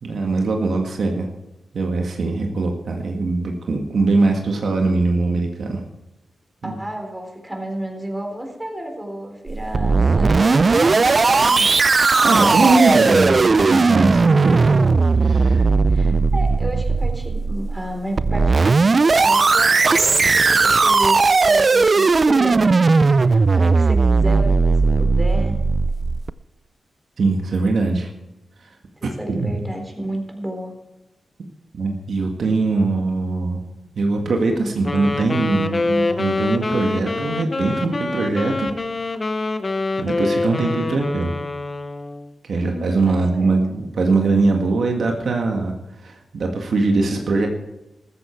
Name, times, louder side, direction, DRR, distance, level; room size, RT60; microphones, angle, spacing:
voice 1, 0.0-1.3 1.7-5.8 6.6-6.8 12.2-13.3 13.7-14.6 15.2-15.7 16.1-16.2 27.2-28.1 29.0-29.6 31.7-33.6 34.0-38.8 40.0-41.3 42.5-45.7 46.0-47.5, right 3 dB, 70° right, 2 dB, 1.8 m, -21 dB
voice 2, 6.6-11.7 15.6-25.6 29.0-30.7 42.5-43.6, right 1 dB, 15° right, 2 dB, 4.0 m, -32 dB
sound 1, 9.5-26.3, right 4 dB, 45° right, 0.4 m, -17 dB
Wind instrument woodwind instrument, 34.8-42.3, left 3 dB, 40° left, 1.0 m, -25 dB
14.0 x 13.5 x 4.6 m, 0.96 s
cardioid pair, 75°, 0 cm